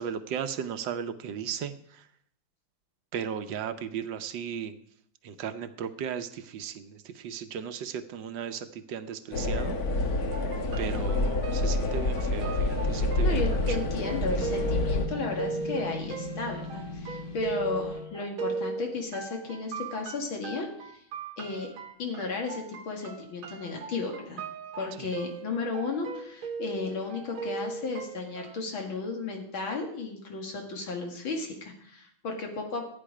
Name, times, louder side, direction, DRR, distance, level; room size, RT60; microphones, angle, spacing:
voice 1, 0.0-2.1 3.1-4.7 5.2-10.3 10.8-13.8 25.0-25.1, right 8 dB, 70° right, 10 dB, 1.4 m, -36 dB
sound 1, 9.3-15.1, left 2 dB, 50° left, 1.6 m, -28 dB
sound 2, 10.3-28.6, right 5 dB, 85° right, 2.0 m, -38 dB
sound 3, 11.7-18.1, left 2 dB, 35° left, 1.0 m, -40 dB
voice 2, 13.2-21.0 21.4-21.7 22.0-24.5 24.8-32.9, left 3 dB, 80° left, 2 dB, 2.9 m, -34 dB
13.5 x 9.5 x 5.0 m, 0.67 s
omnidirectional pair, 2.2 m